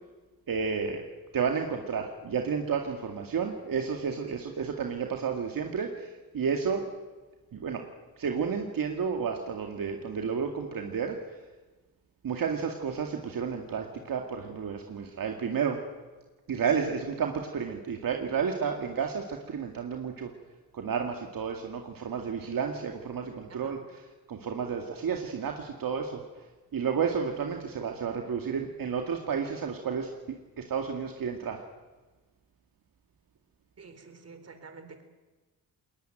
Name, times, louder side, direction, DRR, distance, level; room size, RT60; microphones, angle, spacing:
voice 1, 0.5-1.1 1.3-6.9 7.5-7.9 8.2-11.2 12.2-15.8 16.5-20.3 20.7-26.5 26.7-31.6, right 6 dB, 65° right, 3 dB, 2.2 m, -31 dB
voice 2, 33.8-35.0, right 4 dB, 40° right, 8 dB, 3.8 m, -49 dB
21.0 x 19.5 x 9.1 m, 1.2 s
cardioid pair, 95°, 37 cm